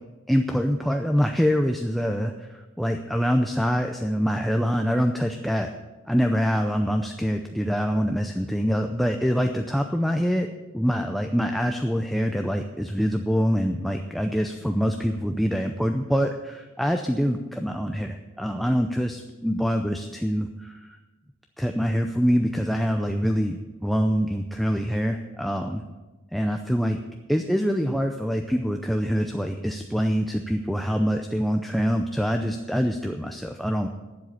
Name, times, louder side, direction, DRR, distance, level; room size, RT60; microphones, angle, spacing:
voice 1, 0.3-5.7 6.1-10.5 10.7-21.0 21.6-25.8 26.3-27.0 27.3-33.9, equal, ahead, 4 dB, 0.5 m, -25 dB
12.0 x 7.6 x 8.4 m, 1.2 s
head